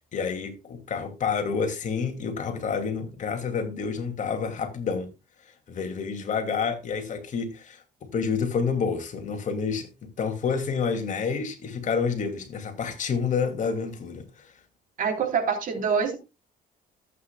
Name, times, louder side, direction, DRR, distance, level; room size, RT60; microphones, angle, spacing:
voice 1, 0.1-5.1 5.7-14.5, left 5 dB, 45° left, 2.5 m, -29 dB
voice 2, 15.0-16.2, right 6 dB, 50° right, 3.5 m, -25 dB
14.0 x 8.6 x 2.3 m
cardioid pair, 110°, 17 cm